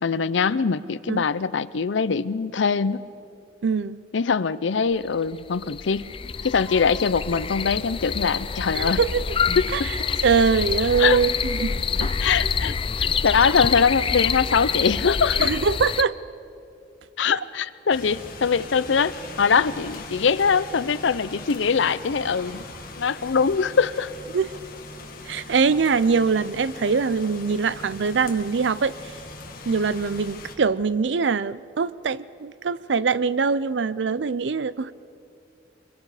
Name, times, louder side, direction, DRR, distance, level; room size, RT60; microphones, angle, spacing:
voice 1, 0.0-3.0 4.1-6.1 6.4-9.0 9.6-9.9 11.0-11.2 12.2-15.5 17.2-22.7 23.0-24.1, left 5 dB, 80° left, 16 dB, 0.6 m, -22 dB
voice 2, 3.6-4.0 8.7-9.3 9.7-12.3 15.4-16.1 24.3-24.5 25.2-29.1 29.7-34.9, right 5 dB, 70° right, 17 dB, 0.5 m, -23 dB
sound 1, 5.1-5.2 5.5-16.0, left 6 dB, 30° left, 0.4 m, -27 dB
sound 2, 17.9-30.5, left 3 dB, 50° left, 2.0 m, -40 dB
24.0 x 23.0 x 4.9 m, 2.6 s
head